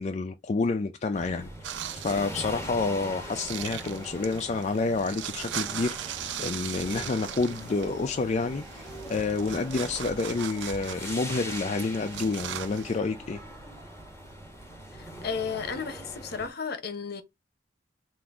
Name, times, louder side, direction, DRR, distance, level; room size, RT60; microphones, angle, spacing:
voice 1, 0.0-13.4, left 3 dB, 40° left, 0.4 m, -29 dB
sound 1, 1.1-16.5, equal, 15° left, 1.5 m, -42 dB
sound 2, 1.6-13.0, right 10 dB, 80° right, 0.5 m, -39 dB
voice 2, 15.0-17.2, left 5 dB, 60° left, 0.8 m, -33 dB
3.8 x 2.5 x 4.7 m
head